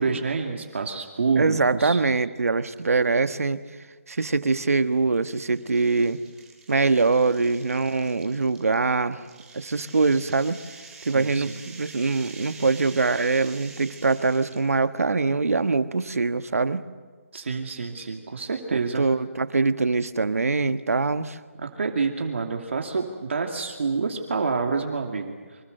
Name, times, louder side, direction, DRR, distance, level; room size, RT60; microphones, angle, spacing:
voice 1, 0.0-2.0 11.1-11.4 17.3-19.0 21.6-25.6, right 4 dB, 60° right, 3 dB, 2.6 m, -28 dB
voice 2, 1.4-3.6 4.1-6.2 6.7-9.2 9.5-10.6 11.0-16.8 18.7-21.4, right 4 dB, 90° right, 10 dB, 1.5 m, -23 dB
sound 1, 2.7-3.1 3.5-3.6 4.6-14.7, right 4 dB, 5° right, 3.0 m, -47 dB
27.5 x 25.0 x 6.7 m, 1.5 s
hypercardioid pair, 170°, 8 cm